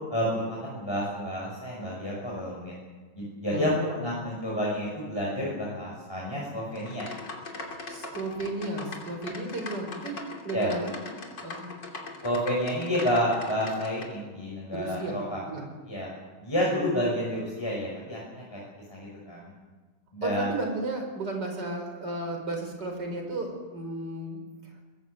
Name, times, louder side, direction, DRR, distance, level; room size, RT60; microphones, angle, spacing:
voice 1, 0.1-2.7 3.2-7.1 10.5-10.7 12.2-15.4 15.9-16.1 16.4-18.6 18.9-19.5 20.1-20.5, equal, 15° left, -4 dB, 6.2 m, -30 dB
voice 2, 3.5-3.9 7.9-10.9 11.4-11.6 14.7-15.7 20.2-24.4, right 2 dB, 65° right, 3 dB, 5.7 m, -34 dB
sound 1, 6.7-14.0, left 3 dB, 70° left, 3.6 m, -41 dB
23.0 x 19.0 x 8.3 m, 1.3 s
omnidirectional pair, 2.0 m